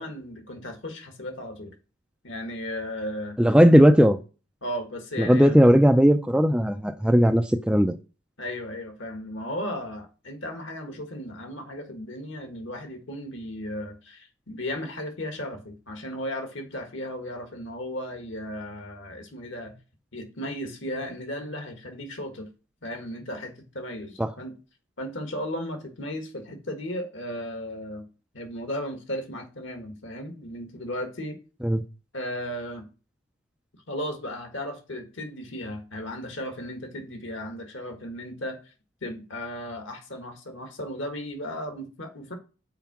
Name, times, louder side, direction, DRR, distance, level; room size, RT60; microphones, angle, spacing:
voice 1, 0.0-1.7 2.2-3.4 4.6-5.6 8.4-19.8 20.1-22.5 22.8-24.5 25.0-28.1 28.3-31.4 32.1-32.9 33.9-38.6 39.0-42.3, left 1 dB, 65° left, 1.6 m, -35 dB
voice 2, 3.4-4.2 5.2-8.0 24.2-24.3 31.6-31.8, equal, 5° right, 0.3 m, -17 dB
5.7 x 4.6 x 5.9 m
head